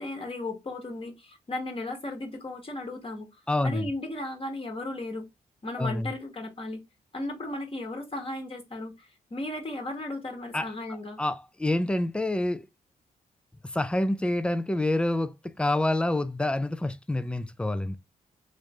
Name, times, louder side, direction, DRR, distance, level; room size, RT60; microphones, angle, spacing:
voice 1, 0.0-3.3 3.6-5.3 5.6-6.8 7.1-11.2, left 2 dB, 35° left, 1.2 m, -35 dB
voice 2, 3.5-3.9 5.8-6.1 10.5-10.7 11.2-12.6 13.7-18.0, left 1 dB, 5° left, 0.4 m, -27 dB
3.1 x 2.6 x 3.2 m
cardioid pair, 60°, 16 cm